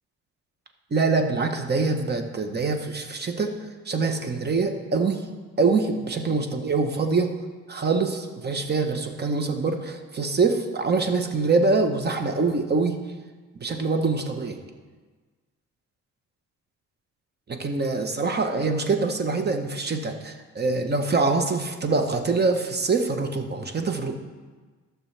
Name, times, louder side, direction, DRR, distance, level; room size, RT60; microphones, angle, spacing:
voice 1, 0.9-3.5 3.9-5.2 5.6-7.3 7.7-13.0 13.6-14.6 17.5-24.1, right 3 dB, 35° right, 5 dB, 1.1 m, -24 dB
14.5 x 6.2 x 3.4 m, 1.4 s
cardioid pair, 90°, 30 cm